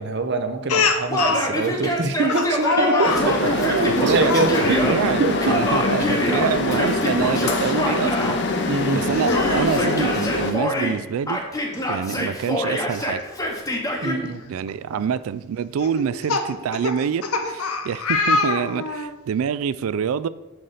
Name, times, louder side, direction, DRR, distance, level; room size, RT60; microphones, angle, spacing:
voice 1, 0.0-3.4 3.7-5.6 8.7-9.0 14.0-14.5 14.9-15.1, right 3 dB, 50° right, 7 dB, 0.7 m, -24 dB
Speech, 0.7-1.5 2.3-3.3 4.2-4.5 5.8-6.0 6.5-6.6 8.2-8.3 9.1-10.0 11.3-11.4 11.7-11.8 13.7-13.8 14.5-14.7 15.8-19.1, left 3 dB, 90° left, 0.7 m, -24 dB
Yell, 1.1-5.0 5.4-8.4 9.3-11.0 11.3-14.2, left 1 dB, 15° left, 0.9 m, -25 dB
sound 1, 3.0-10.5, left 2 dB, 50° left, 0.7 m, -24 dB
voice 2, 3.4-8.3 8.9-11.4 11.9-13.2 14.5-20.3, right 7 dB, 75° right, 16 dB, 0.3 m, -26 dB
6.4 x 5.8 x 3.9 m, 1.0 s
head